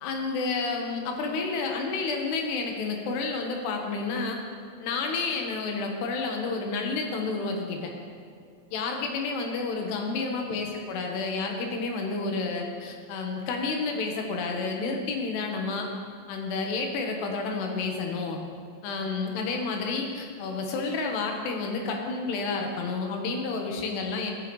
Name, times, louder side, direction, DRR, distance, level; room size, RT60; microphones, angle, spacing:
voice 1, 0.0-4.4 4.8-7.9 8.7-15.9 16.3-18.4 18.8-24.3, left 4 dB, 70° left, 2 dB, 2.9 m, -30 dB
14.5 x 12.5 x 3.2 m, 2.3 s
omnidirectional pair, 5.9 m